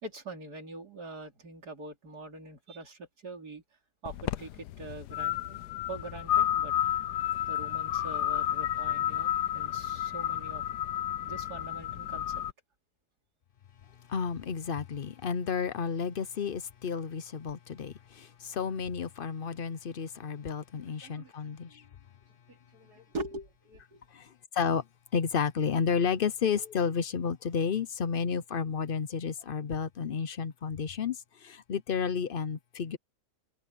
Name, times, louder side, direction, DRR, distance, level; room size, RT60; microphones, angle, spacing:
voice 1, 0.0-3.6 4.0-6.7 7.4-10.6 11.2-12.4 20.8-21.3 22.5-24.0, right 2 dB, 75° right, 3.9 m, -43 dB
sound 1, 4.1-12.5, left 11 dB, 85° left, 1.3 m, -31 dB
voice 2, 14.1-21.8 24.1-24.8 25.1-33.0, left 6 dB, 50° left, 0.7 m, -31 dB
omnidirectional pair, 1.7 m